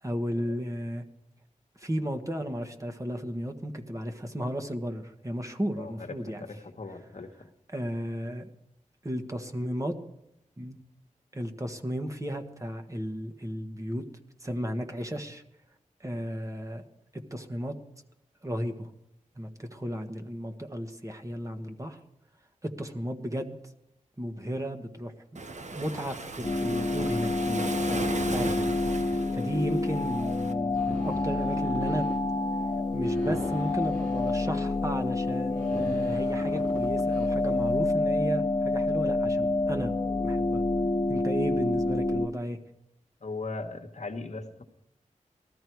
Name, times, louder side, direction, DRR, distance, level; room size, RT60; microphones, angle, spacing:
voice 1, 0.0-1.0 1.8-6.4 7.7-8.5 9.0-9.9 10.6-10.8 11.3-14.0 14.4-15.4 16.0-16.8 17.1-17.7 18.4-18.9 19.4-22.0 22.6-23.6 24.2-25.1 25.7-28.0 28.3-28.7 29.0-32.1 32.9-39.9 40.2-40.6 41.1-42.6, equal, 25° right, 5 dB, 1.5 m, -34 dB
voice 2, 5.8-7.3 43.2-44.6, left 3 dB, 60° left, 5 dB, 1.3 m, -39 dB
Waves surf, 25.4-30.5, right 3 dB, 65° right, 1.1 m, -37 dB
sound 1, 26.4-42.3, left 2 dB, 35° left, 0.8 m, -28 dB
sound 2, 30.7-37.7, right 1 dB, 80° right, 3.4 m, -41 dB
18.5 x 13.5 x 4.7 m, 0.84 s
wide cardioid pair, 55°, 13 cm